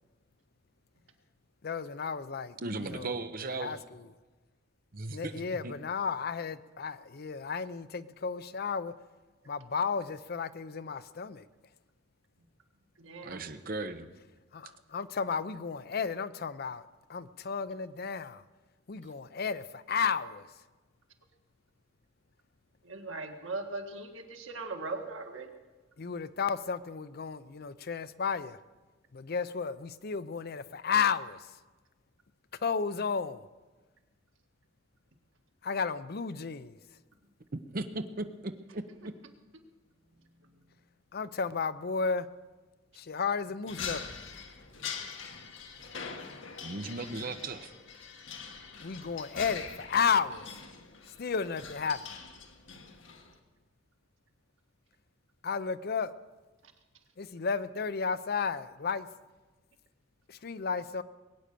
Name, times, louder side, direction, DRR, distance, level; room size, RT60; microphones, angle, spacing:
voice 1, 1.6-3.1 3.6-4.1 5.1-8.9 9.5-11.5 14.5-18.4 18.9-20.5 26.0-28.6 29.1-31.5 32.6-33.5 35.6-36.8 41.1-42.3 42.9-44.1 48.8-50.6 51.2-52.0 55.4-56.1 57.2-59.1 60.3-61.0, left 5 dB, 55° left, 0.6 m, -33 dB
voice 2, 2.6-3.8 4.9-5.3 5.6-5.7 13.2-14.1 37.7-39.1 46.6-47.7, right 2 dB, 50° right, 0.9 m, -37 dB
voice 3, 13.0-13.4 22.8-25.5 40.4-40.7 56.6-56.7, right 3 dB, 90° right, 1.8 m, -40 dB
sound 1, 43.7-53.4, left 6 dB, 75° left, 1.5 m, -43 dB
21.5 x 8.9 x 6.8 m
head